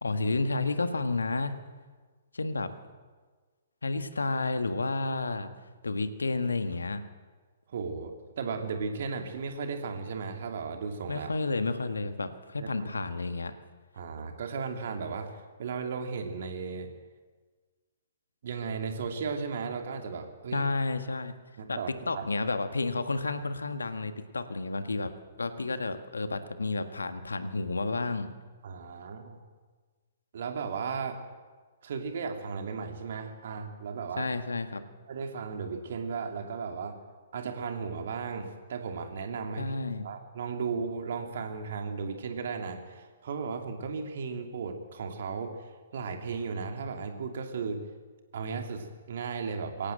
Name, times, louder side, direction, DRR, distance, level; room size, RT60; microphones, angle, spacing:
voice 1, 0.0-1.5 2.3-2.7 3.8-5.5 5.8-7.0 11.1-13.5 20.5-21.3 21.7-28.3 34.2-34.8 39.6-40.0, left 3 dB, 75° left, 9 dB, 1.6 m, -31 dB
voice 2, 7.7-11.3 12.6-12.9 14.0-16.9 18.4-20.7 21.6-22.3 28.6-29.4 30.3-31.2 31.8-34.3 35.1-37.0 37.3-39.8 40.0-45.5 45.9-47.8 48.3-49.9, right 5 dB, 55° right, 5 dB, 2.8 m, -35 dB
22.5 x 17.5 x 7.8 m, 1.4 s
figure-of-eight pair, 120°, 0 cm